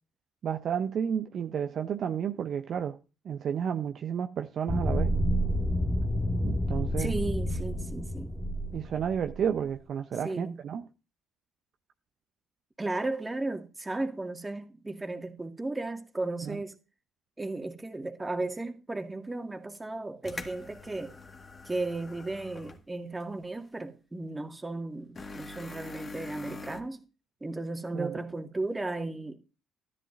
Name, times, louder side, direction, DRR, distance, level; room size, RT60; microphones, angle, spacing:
voice 1, 0.4-3.0 3.2-5.1 6.4-7.1 8.7-10.9 16.4-16.6 27.9-28.2, right 8 dB, 50° right, 0.6 m, -31 dB
sound 1, 4.7-9.5, equal, 10° left, 1.3 m, -29 dB
voice 2, 7.0-8.3 10.2-10.6 12.8-16.8 17.4-21.2 21.7-27.0 27.4-29.4, right 2 dB, 15° right, 1.9 m, -35 dB
sound 2, 19.7-19.8 20.2-22.9 23.2-23.3 25.2-26.8, left 3 dB, 35° left, 1.8 m, -44 dB
13.0 x 10.5 x 2.5 m
hypercardioid pair, 55°, 0 cm